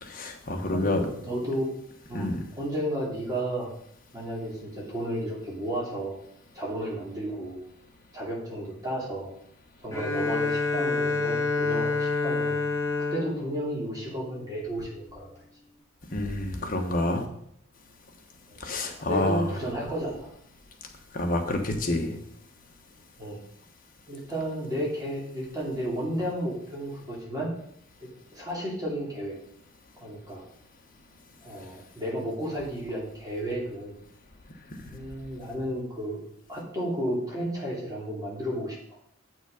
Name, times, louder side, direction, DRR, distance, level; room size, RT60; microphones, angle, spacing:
voice 1, 0.0-1.1 2.1-2.4 16.1-17.2 18.6-19.5 21.1-22.2, left 1 dB, 40° left, 3 dB, 1.3 m, -28 dB
voice 2, 0.7-1.7 2.1-3.7 4.1-6.2 6.5-7.6 8.1-9.3 9.8-12.6 13.1-15.2 18.5-18.6 19.1-20.3 23.2-23.4 24.1-27.5 28.0-29.3 30.0-30.4 31.4-33.9 34.9-36.2 36.5-39.0, right 1 dB, 20° right, -4 dB, 2.7 m, -32 dB
Bowed string instrument, 9.9-14.7, left 3 dB, 15° left, 2.1 m, -28 dB
8.0 x 6.2 x 5.2 m, 0.70 s
head